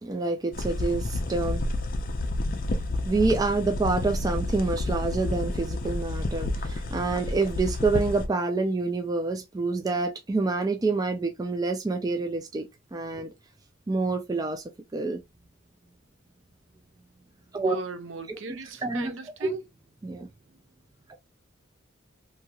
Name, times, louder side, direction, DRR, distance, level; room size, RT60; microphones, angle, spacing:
voice 1, 0.0-1.7 3.0-13.3 13.9-14.6 14.9-15.2 17.5-17.8 18.3-18.4 18.8-19.1 19.4-19.6 20.0-20.3, right 3 dB, 20° right, 0.3 m, -27 dB
sound 1, 0.5-8.3, left 2 dB, 45° left, 0.5 m, -30 dB
voice 2, 17.7-19.6, right 3 dB, 70° right, 0.7 m, -38 dB
2.9 x 2.8 x 2.2 m
head